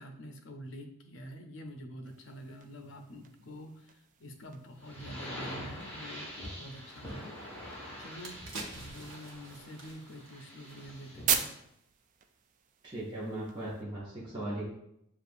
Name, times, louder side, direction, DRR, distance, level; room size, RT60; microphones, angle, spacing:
voice 1, 0.0-6.3 6.6-7.3 7.6-8.4 8.7-11.5, equal, 65° left, 5 dB, 0.6 m, -47 dB
sound 1, 2.0-13.8, right 8 dB, 40° right, 0.3 m, -41 dB
sound 2, 4.8-11.5, equal, 10° left, 1.2 m, -45 dB
sound 3, 8.0-11.3 11.6-11.8, right 3 dB, 75° right, 0.8 m, -47 dB
voice 2, 12.8-14.6, right 1 dB, 25° right, -7 dB, 0.8 m, -38 dB
6.6 x 2.4 x 2.6 m, 0.78 s
head